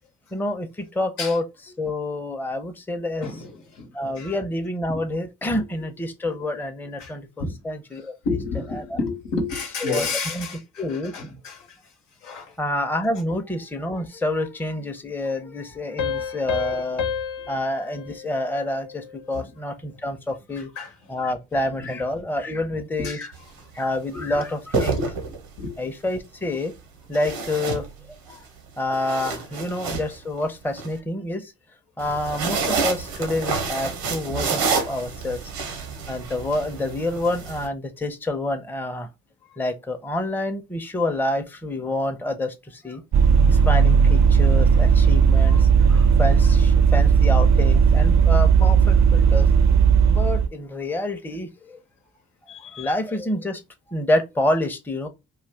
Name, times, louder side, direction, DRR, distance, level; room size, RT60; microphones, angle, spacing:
voice 1, 0.3-3.4 3.9-8.2 8.7-9.0 9.8-10.5 10.8-11.1 12.6-17.0 17.5-20.7 21.1-23.3 23.7-25.0 25.8-26.7 27.1-28.4 28.8-31.5 32.0-35.4 36.1-39.1 39.6-43.0 43.5-49.5 50.1-51.8 52.7-53.6 53.9-55.1, left 1 dB, 5° left, 0.6 m, -28 dB
voice 2, 3.2-4.4 4.9-5.1 7.0-7.1 7.4-7.6 8.2-11.8 12.2-12.6 16.7-16.8 19.3-19.5 20.8-20.9 21.8-21.9 23.0-23.2 24.1-24.3 24.7-25.7 52.5-52.9, left 3 dB, 80° left, 0.9 m, -31 dB
Piano, 16.0-19.3, left 7 dB, 50° left, 0.6 m, -31 dB
sound 1, 23.3-23.6 24.5-25.7 27.1-28.4 28.8-30.9 32.0-37.7, right 5 dB, 80° right, 0.9 m, -28 dB
Vehicle, 43.1-50.5, right 6 dB, 45° right, 0.5 m, -16 dB
2.4 x 2.3 x 3.3 m
hypercardioid pair, 40°, 40 cm